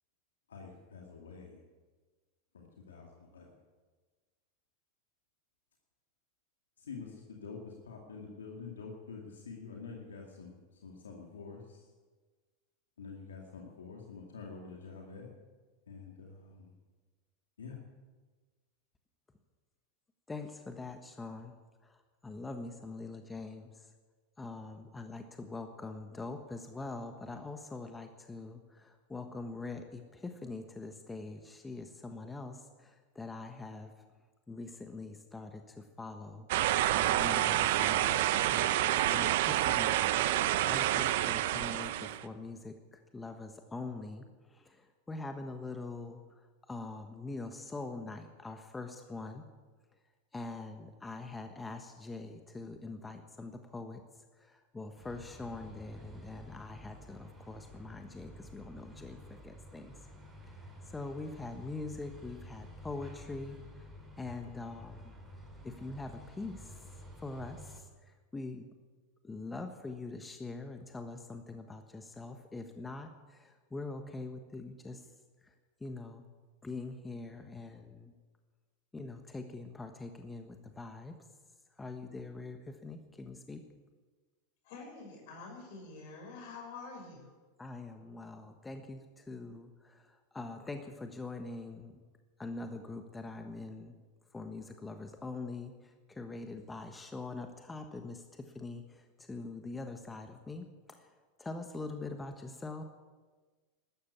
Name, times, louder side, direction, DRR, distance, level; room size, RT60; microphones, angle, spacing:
voice 1, 0.5-1.6 2.5-3.5 6.8-11.8 13.0-15.3 15.9-16.7 17.6-17.8, left 5 dB, 80° left, 0 dB, 2.3 m, -47 dB
voice 2, 20.3-21.5 21.8-23.9 24.4-33.9 34.5-40.3 40.7-49.4 50.3-60.0 60.5-63.9 64.2-65.1 65.6-66.9 67.2-68.7 69.2-75.1 75.4-75.5 75.8-76.2 76.6-78.1 78.9-81.2 81.7-83.6 87.6-92.0 92.4-93.9 94.3-102.8, left 3 dB, 15° left, 6 dB, 1.3 m, -44 dB
sound 1, 36.5-42.2, right 13 dB, 65° right, 0.8 m, -28 dB
sound 2, 55.0-67.8, equal, 15° right, 6.5 m, -51 dB
voice 3, 84.6-87.3, left 4 dB, 60° left, 1 dB, 6.6 m, -47 dB
13.0 x 13.0 x 8.3 m, 1.4 s
hypercardioid pair, 90°, 0 cm